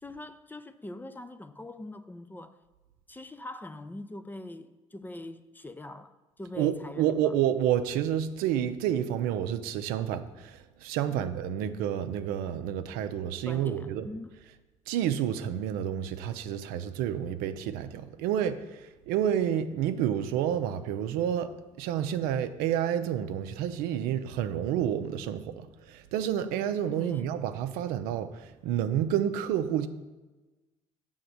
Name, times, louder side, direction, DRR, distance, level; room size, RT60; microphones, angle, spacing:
voice 1, 0.0-2.6 3.1-7.3 11.1-11.3 13.5-14.4 27.0-27.4, left 1 dB, 10° left, 0.4 m, -43 dB
voice 2, 6.5-14.1 14.9-21.5 21.8-29.9, right 10 dB, 70° right, 0.5 m, -29 dB
7.6 x 3.5 x 6.5 m
hypercardioid pair, 60°, 16 cm